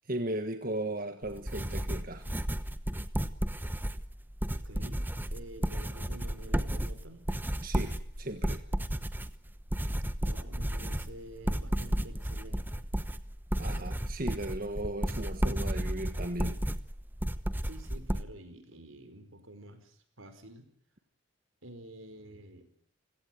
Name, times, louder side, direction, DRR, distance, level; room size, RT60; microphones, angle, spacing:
voice 1, 0.1-2.3 7.6-8.6 13.6-16.6, right 1 dB, 45° right, 8 dB, 1.5 m, -36 dB
sound 1, 1.2-18.2, equal, 10° right, 1.0 m, -33 dB
voice 2, 4.5-7.3 10.2-12.8 17.6-20.7 21.6-22.7, right 1 dB, 80° right, 10 dB, 5.0 m, -49 dB
29.0 x 17.0 x 9.2 m, 0.64 s
head